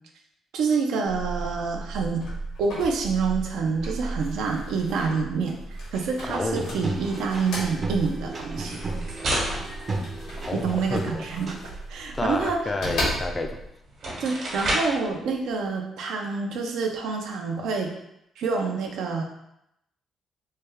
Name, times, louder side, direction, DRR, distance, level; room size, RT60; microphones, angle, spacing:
voice 1, 0.5-2.2 2.6-5.6 5.9-8.8 10.5-11.5 11.9-12.6 14.2-17.9 18.4-19.2, right 4 dB, 80° right, 2 dB, 0.5 m, -27 dB
sound 1, 1.1-13.7, right 1 dB, 90° left, 1.3 m, -35 dB
voice 2, 6.2-6.8 10.4-11.3 12.1-13.6, left 2 dB, 25° left, 5 dB, 0.4 m, -30 dB
sound 2, 6.2-11.6, right 2 dB, 40° right, 0.6 m, -34 dB
sound 3, 8.5-10.9 13.3-13.4 13.9-15.1, right 1 dB, 65° right, 1.1 m, -31 dB
3.2 x 2.3 x 3.3 m, 0.81 s
cardioid pair, 90°, 0 cm